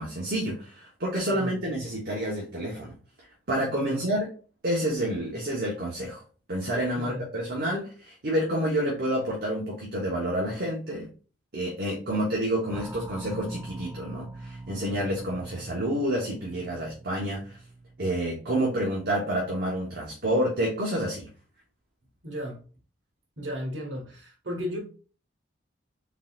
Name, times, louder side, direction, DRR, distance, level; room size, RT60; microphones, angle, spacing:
voice 1, 0.0-2.9 3.5-4.3 4.6-6.2 6.5-11.1 11.5-17.6 18.0-21.3, right 1 dB, 55° right, 1.1 m, -29 dB
sound 1, 12.7-19.0, right 2 dB, 10° right, 0.3 m, -43 dB
voice 2, 22.2-22.6 23.4-24.8, equal, 75° right, 1.5 m, -34 dB
3.9 x 3.8 x 2.4 m
head